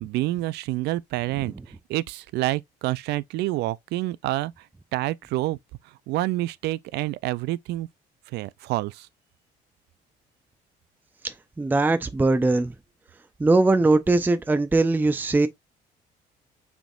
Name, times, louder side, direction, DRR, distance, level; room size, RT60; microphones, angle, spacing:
voice 1, 0.0-4.7 4.9-5.6 6.1-7.9 8.3-9.1, right 17 dB, 80° right, 0.4 m, -28 dB
voice 2, 11.2-12.7 13.4-15.5, right 2 dB, 10° right, 0.5 m, -21 dB
6.0 x 3.6 x 2.4 m
cardioid pair, 110°, 17 cm